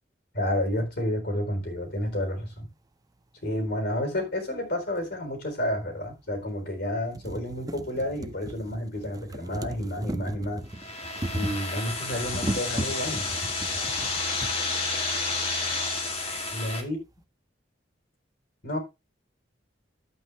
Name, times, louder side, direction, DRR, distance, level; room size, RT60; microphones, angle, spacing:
voice 1, 0.3-2.7 3.4-10.6 11.3-13.2 16.5-17.0 18.6-18.8, left 1 dB, 60° left, 4.3 m, -30 dB
sound 1, 5.0-5.1 6.0-6.1 6.6-6.7 7.0-14.5 15.5-15.6 15.8-15.9, right 1 dB, 20° right, 0.6 m, -36 dB
sound 2, 10.7-16.8, left 3 dB, 35° left, 2.3 m, -30 dB
11.0 x 8.4 x 3.4 m
head